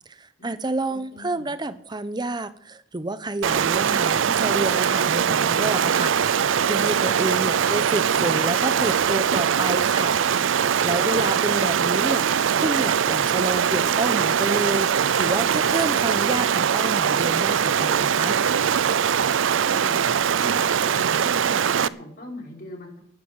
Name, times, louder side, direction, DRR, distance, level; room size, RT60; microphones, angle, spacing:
voice 1, 0.2-10.2 10.8-18.4, right 2 dB, 20° right, 13 dB, 0.8 m, -29 dB
voice 2, 0.9-1.5 7.4-7.6 11.2-11.3 19.6-23.0, left 1 dB, 50° left, 0 dB, 4.0 m, -40 dB
Stream, 3.4-21.9, right 7 dB, 80° right, 0.5 m, -22 dB
11.5 x 10.0 x 8.9 m, 0.66 s
head